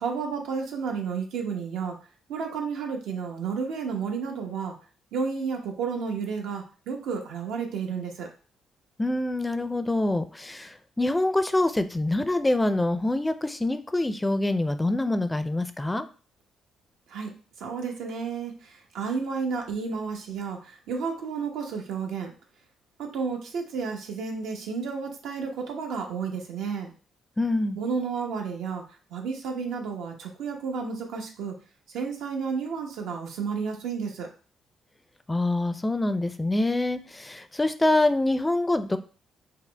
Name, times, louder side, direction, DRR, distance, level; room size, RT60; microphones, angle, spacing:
voice 1, 0.0-2.0 2.3-4.8 5.1-8.3 17.1-17.3 17.6-22.3 23.0-26.9 27.8-28.8 29.1-31.5 31.9-34.3, right 5 dB, 85° right, 2 dB, 0.9 m, -31 dB
voice 2, 9.0-16.1 27.4-27.8 35.3-39.0, left 2 dB, 15° left, 11 dB, 0.4 m, -25 dB
5.7 x 2.0 x 3.3 m, 0.37 s
cardioid pair, 90°, 0 cm